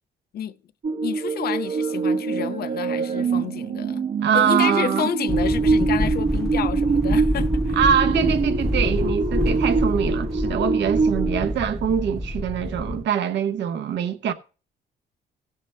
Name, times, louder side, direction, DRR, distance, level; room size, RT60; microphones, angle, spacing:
sound 1, 0.8-11.5, right 4 dB, 50° right, 0.9 m, -24 dB
voice 1, 1.0-4.1 4.3-7.8, left 9 dB, 60° left, 0.7 m, -30 dB
voice 2, 4.2-5.1 7.8-14.3, right 8 dB, 80° right, 0.8 m, -23 dB
sound 2, 5.3-13.0, equal, ahead, 0.7 m, -27 dB
17.0 x 6.6 x 3.3 m
cardioid pair, 110°, 18 cm